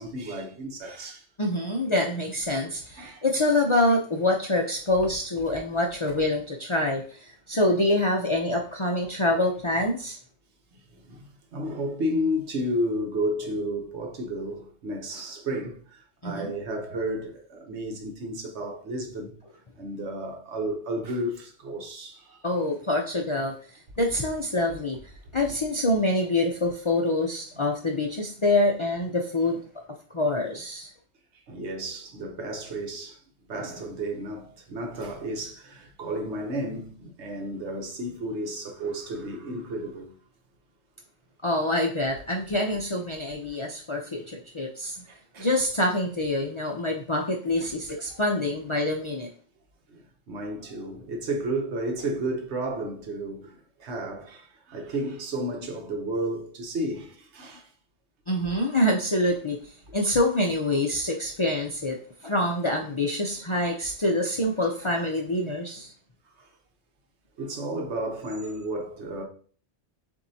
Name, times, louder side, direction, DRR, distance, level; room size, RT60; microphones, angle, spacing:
voice 1, 0.0-1.3 2.9-3.2 10.7-19.4 19.8-22.4 31.5-40.2 43.5-43.6 45.1-45.5 48.1-48.2 49.9-57.7 66.4-66.5 67.4-69.2, right 1 dB, 75° right, 1.2 m, -32 dB
voice 2, 1.4-10.2 16.2-16.5 22.4-23.5 24.0-25.0 25.3-29.6 30.1-30.9 41.4-45.0 45.4-49.3 58.3-65.9, left 1 dB, 40° left, 0.4 m, -26 dB
7.1 x 2.7 x 2.7 m
omnidirectional pair, 1.2 m